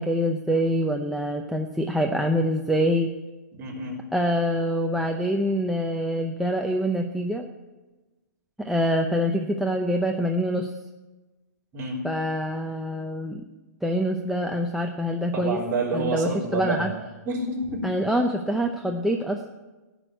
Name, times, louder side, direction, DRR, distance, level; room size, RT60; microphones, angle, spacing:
voice 1, 0.0-3.1 4.1-7.5 8.6-10.7 12.0-13.4 13.8-15.6 15.9-16.9 17.8-19.5, equal, ahead, 1 dB, 0.6 m, -25 dB
voice 2, 3.5-4.0 11.7-12.0 15.3-16.9 17.3-17.9, right 2 dB, 25° right, -4 dB, 3.7 m, -28 dB
16.0 x 6.2 x 9.1 m, 1.2 s
hypercardioid pair, 150°, 10 cm